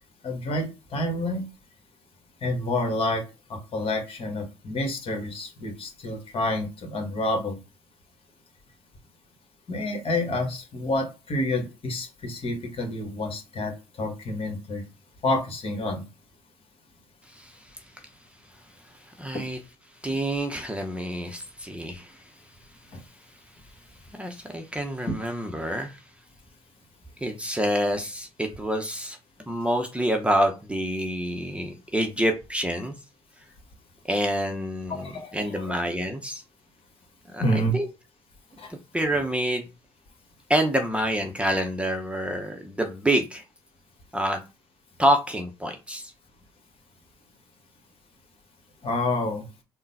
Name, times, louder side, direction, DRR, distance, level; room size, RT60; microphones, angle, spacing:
voice 1, 0.2-1.5 2.4-3.2 3.5-7.6 9.7-13.7 14.0-14.8 15.2-16.0 19.3-19.4 34.9-35.8 37.4-37.8 38.6-38.7 48.8-49.4, left 1 dB, 45° left, 1.5 m, -28 dB
voice 2, 17.3-17.8 19.1-19.6 20.0-22.2 24.1-26.0 27.2-29.2 29.5-32.9 34.1-36.4 37.3-37.9 38.9-39.7 40.5-43.4 44.1-44.4 45.0-46.1, equal, 10° right, 0.8 m, -27 dB
3.8 x 2.2 x 4.1 m
hypercardioid pair, 60°, 13 cm